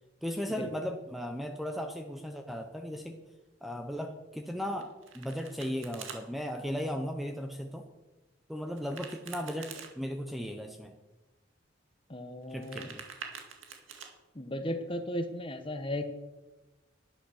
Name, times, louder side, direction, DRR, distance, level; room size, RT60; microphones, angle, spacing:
voice 1, 0.2-3.2 3.6-7.8 8.5-10.9 12.5-13.0, equal, ahead, 5 dB, 0.7 m, -36 dB
Domestic sounds home sounds, 4.8-6.2 8.7-9.9 12.4-14.1, right 6 dB, 85° right, 2.1 m, -45 dB
voice 2, 12.1-12.9 14.3-16.1, left 1 dB, 25° left, 8 dB, 1.0 m, -36 dB
11.0 x 10.0 x 6.4 m, 1.1 s
head